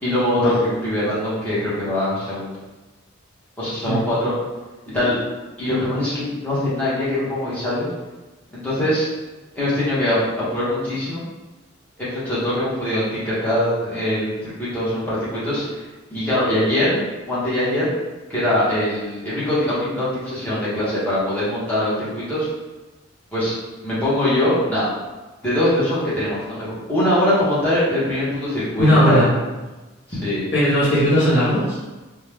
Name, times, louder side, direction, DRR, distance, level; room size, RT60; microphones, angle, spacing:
voice 1, 0.0-2.6 3.6-4.3 4.9-5.2 5.6-7.9 8.5-9.1 9.5-11.2 12.0-17.0 17.3-17.9 18.3-22.5 23.3-23.5 23.8-24.9 25.4-29.2 30.1-30.5, left 1 dB, 5° left, -11 dB, 1.0 m, -22 dB
voice 2, 28.8-29.3 30.5-31.8, equal, 55° left, -11 dB, 0.8 m, -17 dB
2.7 x 2.2 x 3.2 m, 1.2 s
head